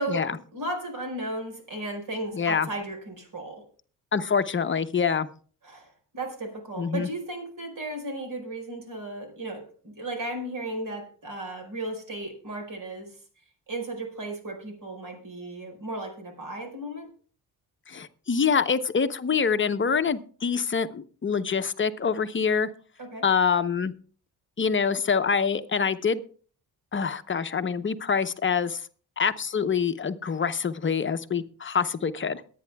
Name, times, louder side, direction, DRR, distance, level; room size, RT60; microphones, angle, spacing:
voice 1, 0.0-3.6 5.6-13.2 13.7-17.1 23.0-23.2, right 1 dB, 55° right, 5 dB, 4.8 m, -35 dB
voice 2, 2.3-2.7 4.1-5.3 6.8-7.1 17.9-22.7 23.2-23.9 24.6-26.2 26.9-28.9 29.2-32.4, left 6 dB, 30° left, 10 dB, 0.8 m, -25 dB
22.5 x 9.4 x 2.3 m, 0.42 s
cardioid pair, 85°, 38 cm